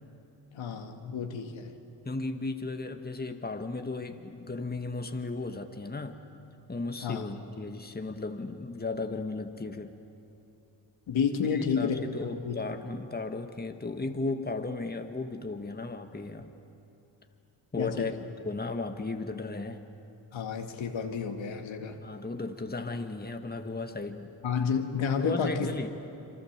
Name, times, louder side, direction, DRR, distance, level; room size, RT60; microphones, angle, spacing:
voice 1, 0.5-1.7 7.0-7.3 11.1-12.6 17.8-18.1 20.3-22.0 24.4-25.7, left 6 dB, 75° left, 4 dB, 2.1 m, -30 dB
voice 2, 2.1-6.2 6.7-10.0 11.5-16.5 17.7-18.1 18.4-19.8 22.0-24.3 25.1-25.9, left 3 dB, 20° left, 6 dB, 1.7 m, -35 dB
27.0 x 24.0 x 7.5 m, 2.8 s
supercardioid pair, 55°, 46 cm